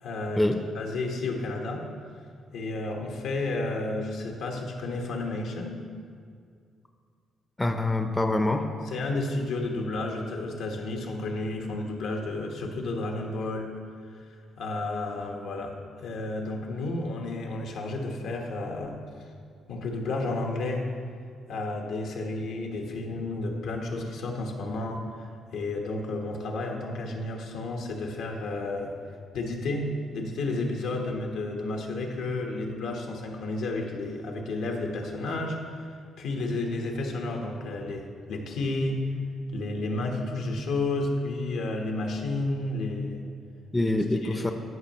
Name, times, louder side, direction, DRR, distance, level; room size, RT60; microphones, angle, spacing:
voice 1, 0.0-0.4 0.7-1.8 2.5-5.8 8.9-13.7 14.2-14.3 14.6-19.0 19.7-20.9 21.5-29.0 29.3-35.9 36.2-39.0 39.5-43.2 44.2-44.5, left 2 dB, 80° left, 1 dB, 1.1 m, -31 dB
voice 2, 7.6-8.7 43.7-44.5, left 2 dB, 15° left, 6 dB, 0.5 m, -25 dB
14.0 x 5.3 x 3.0 m, 2.2 s
cardioid pair, 90°, 0 cm